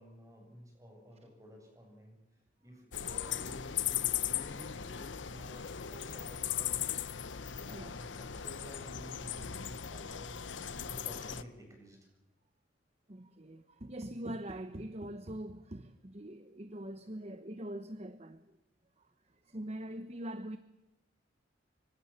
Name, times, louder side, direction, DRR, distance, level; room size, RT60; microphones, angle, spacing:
voice 1, 0.0-2.2 2.6-7.1 7.6-10.5 10.8-12.1, equal, 15° right, 7.8 m, -52 dB
sound 1, 2.9-11.4, left 10 dB, 90° left, 1.0 m, -38 dB
voice 2, 13.1-18.4 19.4-20.6, right 1 dB, 35° right, 1.0 m, -43 dB
26.0 x 25.0 x 7.4 m
head